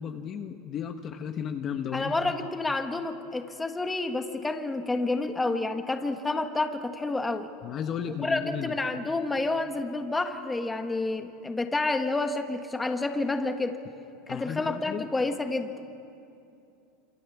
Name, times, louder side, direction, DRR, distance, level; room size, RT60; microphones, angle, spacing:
voice 1, 0.0-2.3 7.6-8.8 14.3-15.1, left 7 dB, 30° left, 6 dB, 1.3 m, -34 dB
voice 2, 1.9-7.5 8.2-13.8 14.3-15.7, left 2 dB, 10° left, 6 dB, 1.5 m, -29 dB
27.0 x 27.0 x 7.3 m, 2.6 s
supercardioid pair, 150°, 0 cm